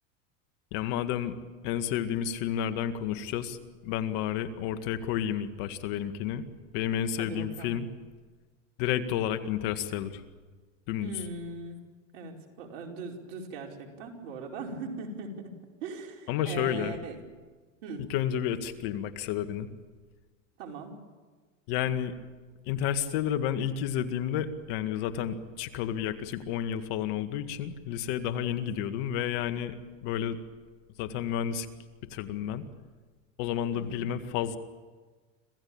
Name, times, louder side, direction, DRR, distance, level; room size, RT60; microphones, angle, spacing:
voice 1, 0.7-1.3 1.6-3.6 3.8-6.4 6.7-7.9 8.8-10.2 10.9-11.1 16.3-17.0 18.1-19.7 21.7-22.1 22.7-29.8 30.0-30.4 31.0-31.7 32.1-32.6 33.4-34.6, left 10 dB, 60° left, 9 dB, 2.0 m, -31 dB
voice 2, 7.2-7.8 11.0-11.8 12.1-15.5 15.8-17.2 17.8-18.0 20.6-20.9 28.6-28.7 33.7-34.1, right 3 dB, 70° right, 1 dB, 5.0 m, -40 dB
26.5 x 16.0 x 8.9 m, 1.4 s
supercardioid pair, 120°, 38 cm